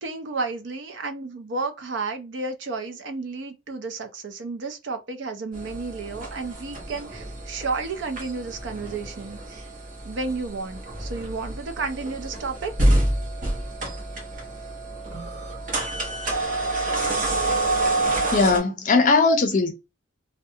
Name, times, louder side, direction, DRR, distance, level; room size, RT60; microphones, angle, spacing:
voice 1, 0.0-9.6 10.0-12.7, right 3 dB, 75° right, 0.5 m, -32 dB
sound 1, 5.5-18.6, right 1 dB, 45° right, 0.9 m, -28 dB
voice 2, 18.3-19.7, left 3 dB, 40° left, 0.5 m, -19 dB
2.3 x 2.1 x 2.7 m
head